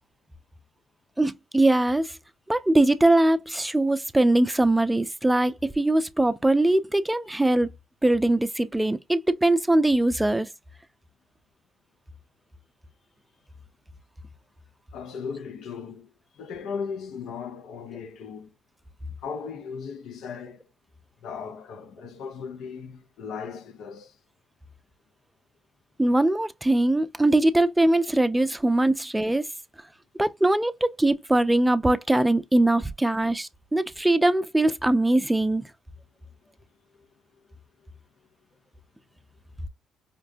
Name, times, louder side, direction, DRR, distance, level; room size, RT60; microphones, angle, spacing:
voice 1, 1.2-2.1 2.5-7.7 8.0-10.5 26.0-29.5 30.2-35.7, right 1 dB, 10° right, 0.5 m, -22 dB
voice 2, 14.9-18.6 19.2-20.7 21.2-24.2 37.0-37.1, left 6 dB, 70° left, 0.6 m, -37 dB
5.1 x 2.1 x 2.5 m
hypercardioid pair, 55°, 0 cm